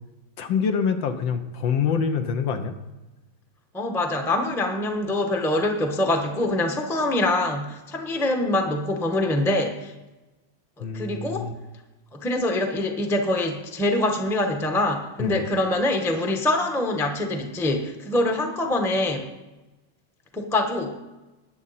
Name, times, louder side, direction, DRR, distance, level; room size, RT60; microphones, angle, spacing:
voice 1, 0.4-2.7 10.8-11.5 15.2-15.4, left 6 dB, 70° left, 7 dB, 1.6 m, -25 dB
voice 2, 3.7-9.9 10.8-11.4 12.1-19.3 20.3-21.0, left 1 dB, ahead, 3 dB, 0.7 m, -24 dB
20.0 x 7.6 x 4.2 m, 1.1 s
omnidirectional pair, 2.2 m